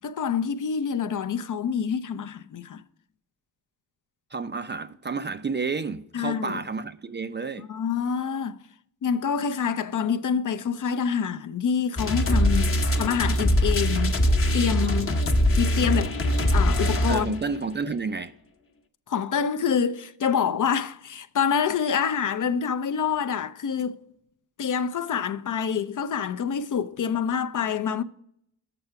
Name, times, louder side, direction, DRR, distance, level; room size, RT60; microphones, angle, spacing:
voice 1, 0.0-2.8 6.1-6.6 7.6-8.6 9.0-12.7 13.0-14.2 14.5-15.2 15.6-16.2 16.5-17.3 19.1-24.0 24.6-28.0, left 7 dB, 45° left, 0.5 m, -26 dB
voice 2, 4.3-7.7 12.3-12.9 14.9-15.0 17.1-18.3, right 4 dB, 25° right, 0.4 m, -31 dB
sound 1, 12.0-17.5, equal, 30° left, 0.9 m, -22 dB
6.8 x 5.6 x 5.6 m
supercardioid pair, 45°, 44 cm